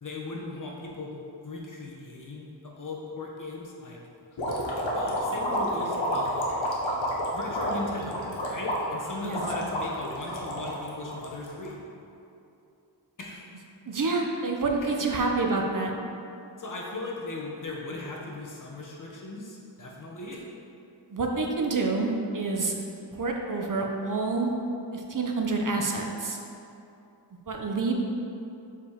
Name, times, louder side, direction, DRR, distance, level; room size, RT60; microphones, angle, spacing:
voice 1, 0.0-4.0 4.9-6.5 7.3-11.8 13.2-13.5 14.8-14.9 16.6-20.4, left 2 dB, 45° left, -2 dB, 0.9 m, -38 dB
sound 1, 4.4-11.7, equal, 90° left, 1.0 m, -30 dB
voice 2, 13.9-15.9 21.1-22.8 23.1-24.5 24.9-26.4 27.5-27.9, right 3 dB, 45° right, 1 dB, 0.6 m, -28 dB
6.8 x 4.9 x 2.9 m, 2.7 s
wide cardioid pair, 80°, 45 cm